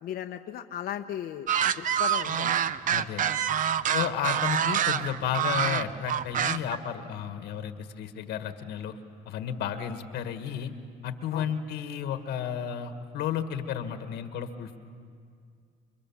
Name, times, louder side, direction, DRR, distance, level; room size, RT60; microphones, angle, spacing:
voice 1, 0.0-1.5 1.8-2.5 3.9-4.0 11.3-11.5, left 10 dB, 65° left, 5 dB, 0.8 m, -36 dB
sound 1, 1.5-6.8, right 9 dB, 50° right, 0.7 m, -26 dB
voice 2, 2.9-3.3 3.9-9.0 9.2-10.7 11.0-14.8, left 9 dB, 80° left, 8 dB, 1.6 m, -32 dB
29.0 x 23.0 x 7.2 m, 2.2 s
cardioid pair, 110°, 17 cm